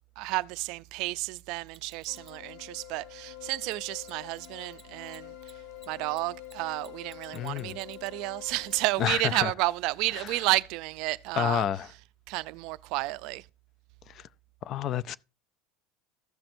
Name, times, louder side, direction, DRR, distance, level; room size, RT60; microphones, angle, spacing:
voice 1, 0.2-5.5 5.9-11.6 12.3-13.5, right 20 dB, 55° right, 0.4 m, -31 dB
Mechanisms, 1.7-2.4 3.6-3.7 4.0-4.1 4.4-4.5 4.7-8.3 8.7-8.8 10.3-10.4, right 2 dB, ahead, 1.0 m, -54 dB
sound 1, 2.1-8.9, left 18 dB, 60° left, 0.8 m, -47 dB
voice 2, 7.3-7.8 9.0-9.5 10.1-10.3 11.3-11.9 14.1-14.3 14.6-15.2, left 10 dB, 35° left, 0.3 m, -29 dB
15.0 x 5.9 x 2.6 m
cardioid pair, 160°, 0 cm